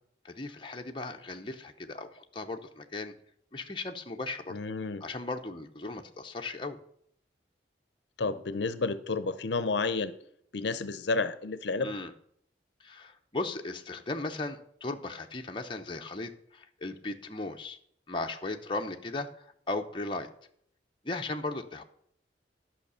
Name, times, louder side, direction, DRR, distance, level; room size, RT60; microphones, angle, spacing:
voice 1, 0.2-3.1 3.5-4.6 5.0-6.8 11.8-12.1 12.8-17.8 18.1-20.3 21.0-21.8, left 2 dB, 25° left, 4 dB, 0.8 m, -37 dB
voice 2, 4.5-5.1 8.2-10.1 10.5-11.9, left 3 dB, 75° left, 14 dB, 0.6 m, -31 dB
11.5 x 5.7 x 6.8 m, 0.68 s
head